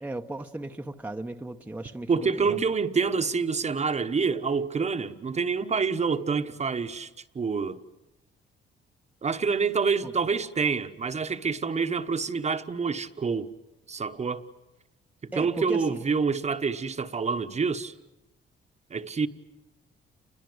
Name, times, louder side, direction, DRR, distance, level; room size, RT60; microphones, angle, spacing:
voice 1, 0.0-2.6 3.0-3.1 10.0-10.1 15.3-16.0, right 2 dB, 5° right, 1.0 m, -36 dB
voice 2, 2.1-7.1 7.3-7.8 9.2-13.5 13.9-14.4 15.4-17.9 18.9-19.3, right 5 dB, 35° right, 1.2 m, -27 dB
29.0 x 22.0 x 8.0 m
cardioid pair, 90°, 20 cm